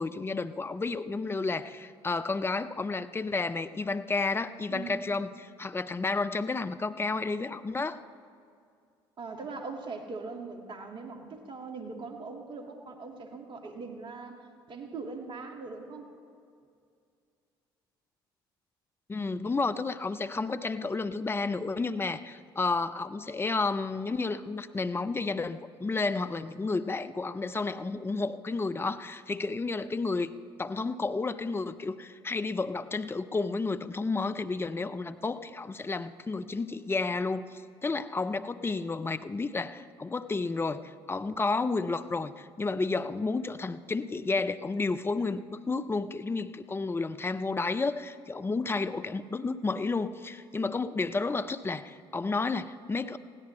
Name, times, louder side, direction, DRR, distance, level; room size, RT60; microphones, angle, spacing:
voice 1, 0.0-8.0 19.1-30.3 30.6-53.2, left 3 dB, 20° left, 12 dB, 0.7 m, -31 dB
voice 2, 4.7-5.1 9.2-16.1, right 4 dB, 45° right, 3 dB, 2.1 m, -41 dB
20.5 x 16.5 x 3.3 m, 2.3 s
hypercardioid pair, 60°, 12 cm